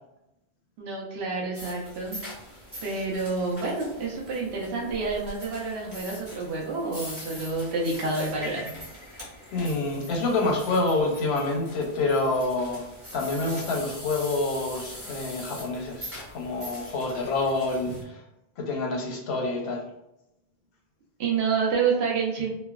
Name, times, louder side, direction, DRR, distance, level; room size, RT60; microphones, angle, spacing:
voice 1, 0.8-2.2 2.8-8.7 17.9-18.0 21.2-22.5, right 4 dB, 80° right, -2 dB, 1.0 m, -28 dB
sound 1, 1.5-18.0, equal, 20° right, 0.5 m, -43 dB
voice 2, 9.5-12.8 13.1-18.2 18.6-19.8, left 2 dB, 90° left, 0 dB, 0.9 m, -27 dB
3.1 x 2.0 x 2.3 m, 0.88 s
omnidirectional pair, 1.1 m